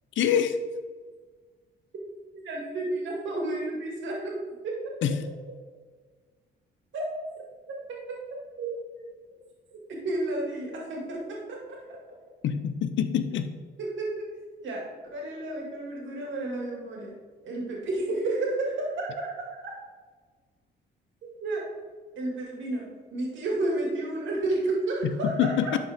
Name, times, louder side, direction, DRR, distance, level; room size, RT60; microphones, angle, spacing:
voice 1, 0.2-0.6 5.0-5.2 12.4-13.5 25.0-25.8, left 8 dB, 70° left, 9 dB, 0.7 m, -25 dB
voice 2, 2.4-4.3 4.6-4.7 6.9-7.0 7.7-7.8 8.6-9.0 9.9-11.4 13.8-14.3 14.6-14.9 15.1-17.1 17.4-19.3 21.4-21.6 22.2-25.7, right 2 dB, 70° right, -2 dB, 2.4 m, -31 dB
11.5 x 4.5 x 3.6 m, 1.5 s
cardioid pair, 90°, 20 cm